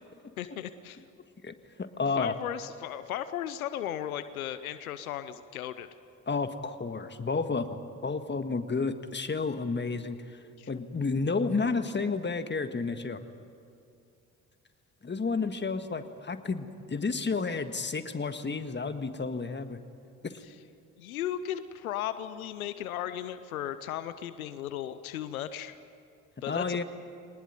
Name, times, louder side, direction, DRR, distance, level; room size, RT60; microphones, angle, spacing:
voice 1, 0.4-1.0 2.2-5.9 10.6-10.8 21.0-25.8 26.4-26.8, left 11 dB, 90° left, 13 dB, 0.7 m, -36 dB
voice 2, 1.4-2.3 6.3-10.4 10.7-13.2 15.0-19.8 20.2-20.4 26.5-26.8, left 4 dB, 25° left, 9 dB, 1.7 m, -31 dB
22.5 x 19.5 x 9.5 m, 2.4 s
hypercardioid pair, 45°, 41 cm